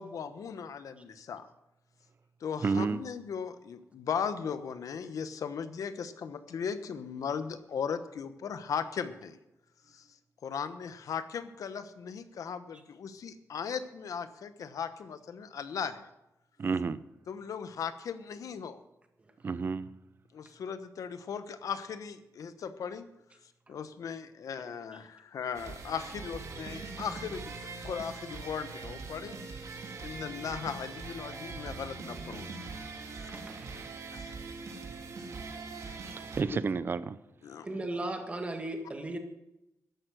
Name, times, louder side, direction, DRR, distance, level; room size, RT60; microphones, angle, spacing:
voice 1, 0.0-1.5 2.4-9.4 9.9-10.1 10.4-16.1 17.3-18.8 20.3-23.1 23.7-29.4 29.6-32.5 33.1-33.3 33.7-33.8 34.1-34.4 35.8-36.0 36.5-36.6 37.4-37.7, left 7 dB, 80° left, 11 dB, 1.1 m, -38 dB
voice 2, 2.6-3.0 16.6-17.0 19.4-19.9 36.0-37.2, right 5 dB, 40° right, 15 dB, 0.6 m, -30 dB
sound 1, 25.5-36.4, right 4 dB, 65° right, 2.1 m, -42 dB
voice 3, 33.2-33.7 37.6-39.2, right 1 dB, 20° right, 5 dB, 1.8 m, -36 dB
13.5 x 11.0 x 6.3 m, 0.90 s
wide cardioid pair, 170°, 6 cm